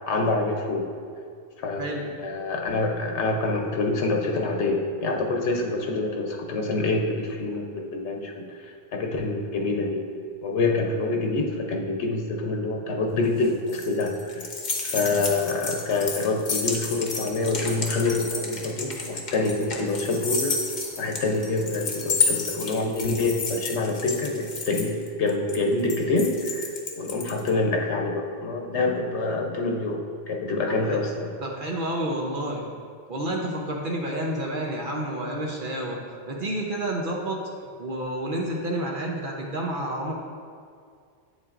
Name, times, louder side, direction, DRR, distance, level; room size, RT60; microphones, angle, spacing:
voice 1, 0.1-0.9 1.6-10.0 10.4-14.5 14.8-20.6 21.0-31.3, left 3 dB, 80° left, 1 dB, 1.0 m, -26 dB
sound 1, 13.2-27.5, left 4 dB, 45° left, 0.9 m, -31 dB
voice 2, 30.7-31.0 31.4-32.6 33.1-36.0 36.3-37.4 37.8-40.1, right 1 dB, 50° right, -1 dB, 0.9 m, -29 dB
8.2 x 7.3 x 2.5 m, 2.2 s
omnidirectional pair, 1.1 m